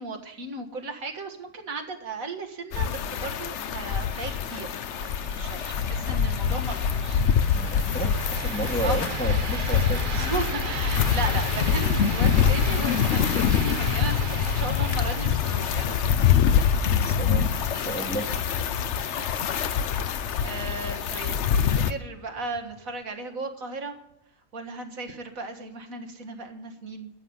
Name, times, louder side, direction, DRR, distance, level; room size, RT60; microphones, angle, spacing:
voice 1, 0.0-7.2 8.8-9.1 10.1-16.2 19.6-20.1 20.4-24.0 24.5-27.1, right 3 dB, 70° right, 5 dB, 2.1 m, -36 dB
sound 1, 2.7-21.9, left 8 dB, 60° left, 0.9 m, -25 dB
sound 2, 4.0-23.0, right 6 dB, 45° right, 0.8 m, -39 dB
voice 2, 7.5-10.3 17.0-17.5 17.7-18.3, right 2 dB, 5° left, 3 dB, 1.2 m, -32 dB
13.5 x 7.5 x 9.5 m, 0.81 s
omnidirectional pair, 1.5 m